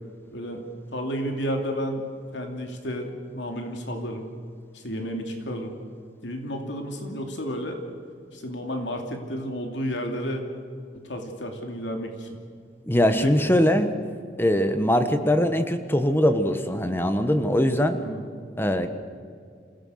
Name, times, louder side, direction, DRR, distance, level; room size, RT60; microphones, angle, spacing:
voice 1, 0.3-0.6 0.9-2.0 2.3-4.3 4.7-5.8 6.2-7.8 8.3-10.4 11.0-12.3 13.0-13.3 18.0-18.3, equal, 85° left, 3 dB, 2.8 m, -31 dB
voice 2, 12.9-13.9 14.4-18.0 18.6-18.9, equal, 10° left, 8 dB, 1.3 m, -21 dB
27.5 x 17.0 x 6.5 m, 2.2 s
head